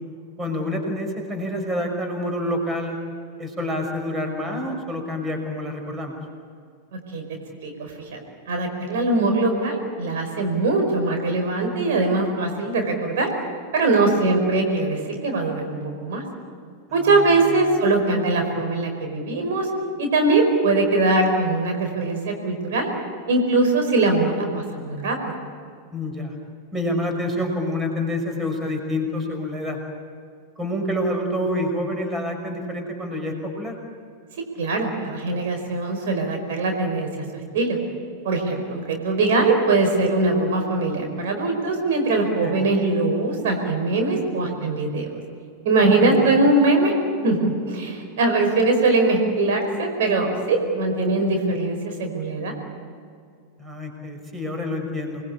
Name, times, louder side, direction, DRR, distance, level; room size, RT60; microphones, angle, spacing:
voice 1, 0.4-3.0 3.4-6.2 17.0-17.6 25.9-26.4 26.7-29.8 30.6-33.8 42.4-42.7 45.8-46.3 53.6-55.2, left 1 dB, 15° right, 4 dB, 5.6 m, -27 dB
voice 2, 7.6-8.2 8.5-13.3 13.7-16.2 16.9-19.7 20.0-22.9 23.3-25.5 34.6-37.1 37.5-37.8 38.2-45.1 45.6-46.9 47.2-52.5, right 2 dB, 55° right, 3 dB, 5.1 m, -21 dB
28.5 x 21.0 x 8.5 m, 2.2 s
figure-of-eight pair, 90°, 0 cm